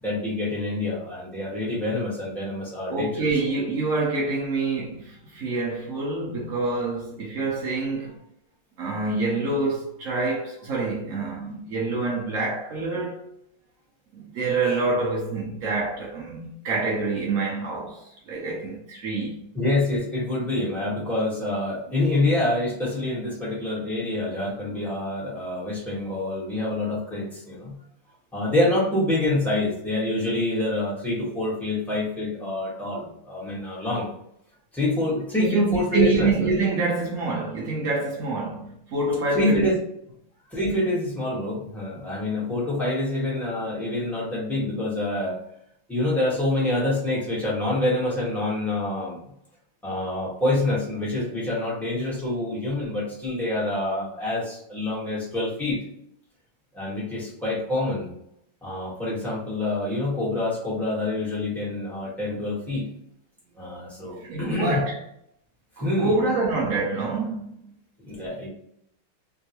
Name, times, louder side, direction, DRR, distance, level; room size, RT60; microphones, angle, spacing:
voice 1, 0.0-3.3 19.5-27.8 28.3-34.1 34.7-36.3 39.3-39.8 40.5-45.4 45.9-49.2 49.8-55.8 56.7-58.1 58.6-62.9 63.6-64.8 65.8-66.2 68.0-68.5, left 2 dB, ahead, 0.6 m, -26 dB
voice 2, 2.9-8.1 8.8-13.3 14.1-19.5 35.4-39.7 64.2-65.0 65.8-67.7, right 3 dB, 80° right, 0.7 m, -26 dB
3.7 x 2.3 x 2.8 m
omnidirectional pair, 2.3 m